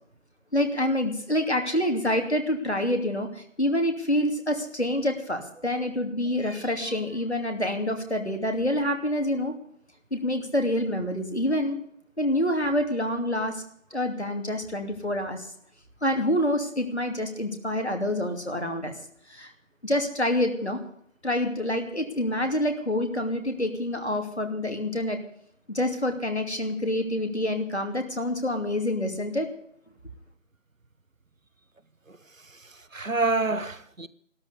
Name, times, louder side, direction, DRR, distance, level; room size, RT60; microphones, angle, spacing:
voice 1, 0.5-9.5 10.1-11.8 12.2-13.6 13.9-15.5 16.0-18.9 19.3-19.5 19.8-20.8 21.2-25.2 25.7-29.5, left 1 dB, 55° left, 2.8 m, -27 dB
voice 2, 32.5-34.1, right 3 dB, 85° right, 1.2 m, -28 dB
13.0 x 12.0 x 8.3 m
figure-of-eight pair, 180°, 39 cm